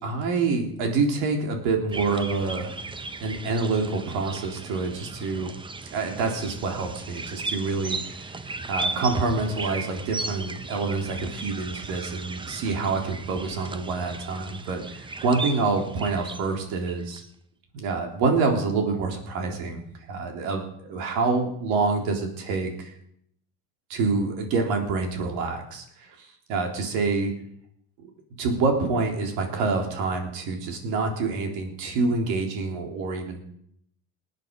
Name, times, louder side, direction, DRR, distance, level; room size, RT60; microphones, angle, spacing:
voice 1, 0.0-2.8 3.2-5.5 5.9-8.3 8.7-17.2 17.7-19.8 20.1-22.9 23.9-27.3 28.4-33.4, right 4 dB, 75° right, 2 dB, 3.7 m, -27 dB
sound 1, 1.9-17.3, right 3 dB, 15° right, 0.7 m, -36 dB
19.5 x 9.3 x 5.3 m, 0.70 s
supercardioid pair, 115°, 38 cm